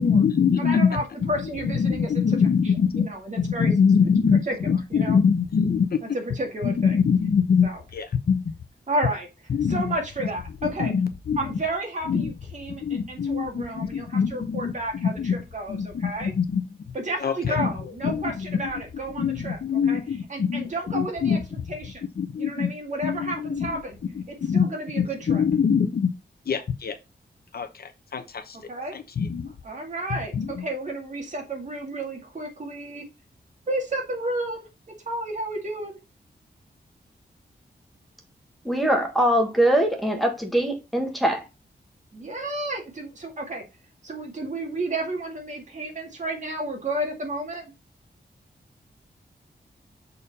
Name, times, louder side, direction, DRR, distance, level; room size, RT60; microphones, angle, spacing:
voice 1, 0.0-3.1 3.4-6.0 6.6-8.4 9.5-9.9 10.6-11.6 12.1-12.3 12.8-15.3 15.7-16.6 17.2-17.7 18.0-18.6 19.2-20.7 20.9-21.4 22.2-22.7 23.0-23.8 24.2-24.7 24.9-26.1 26.5-27.0 27.5-28.6 28.9-29.5 30.3-30.6, left 6 dB, 60° left, 0.9 m, -24 dB
voice 2, 0.6-2.1 3.0-3.7 4.5-4.6 4.9-5.2 6.1-7.0 7.6-7.8 8.9-9.3 9.7-10.9 11.4-16.3 16.9-19.6 19.9-20.0 20.3-21.4 21.7-22.0 22.4-24.0 24.5-25.4 28.7-28.9 29.6-33.0 33.7-34.7 35.1-36.0 42.1-43.6 44.0-47.7, right 1 dB, 45° right, 2.2 m, -31 dB
voice 3, 38.6-41.4, right 1 dB, ahead, 1.5 m, -22 dB
6.8 x 4.2 x 4.2 m
wide cardioid pair, 175°, 18 cm